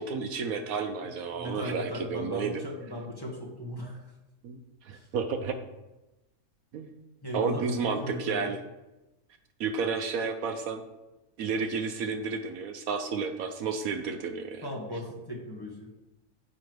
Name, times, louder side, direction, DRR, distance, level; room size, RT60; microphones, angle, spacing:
voice 1, 0.0-2.6 4.4-5.5 6.7-6.9 7.3-8.6 9.6-10.8 11.4-14.7, right 5 dB, 70° right, 6 dB, 1.1 m, -31 dB
voice 2, 1.4-4.0 4.9-5.1 7.2-8.5 14.6-15.9, equal, 15° left, -2 dB, 1.3 m, -37 dB
9.8 x 3.9 x 6.1 m, 1.0 s
omnidirectional pair, 1.6 m